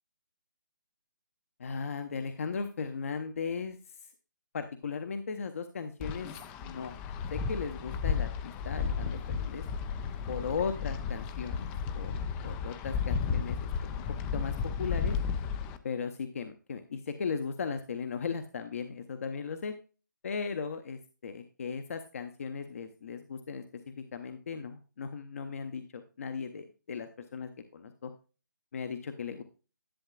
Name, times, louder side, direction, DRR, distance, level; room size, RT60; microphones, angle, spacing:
voice 1, 1.6-3.8 4.5-6.3 6.6-6.9 7.3-9.7 10.3-13.6 13.8-14.0 14.3-15.2 15.8-19.7 20.2-28.1 28.7-29.4, left 5 dB, 45° left, 8 dB, 0.8 m, -37 dB
Wind, 6.0-15.8, left 6 dB, 10° left, 0.4 m, -33 dB
11.5 x 7.3 x 2.3 m, 0.34 s
figure-of-eight pair, 145°, 11 cm